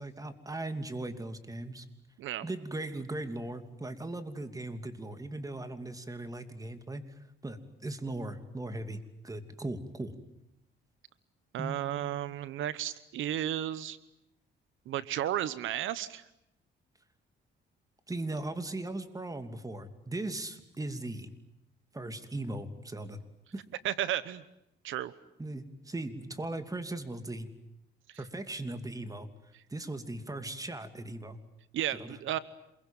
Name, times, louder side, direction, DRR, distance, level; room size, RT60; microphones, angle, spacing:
voice 1, 0.0-1.8 2.4-7.0 7.4-9.0 9.2-10.1 11.6-12.4 18.1-21.3 21.9-23.2 25.4-27.5 28.2-29.3 29.7-31.4 31.9-32.2, right 2 dB, 15° right, 9 dB, 2.9 m, -38 dB
voice 2, 11.5-14.0 14.9-16.2 23.8-24.4 24.8-25.1 28.1-28.2 29.5-29.6 31.7-32.4, right 12 dB, 80° right, 16 dB, 1.1 m, -33 dB
27.5 x 22.5 x 9.2 m, 0.81 s
cardioid pair, 90°, 20 cm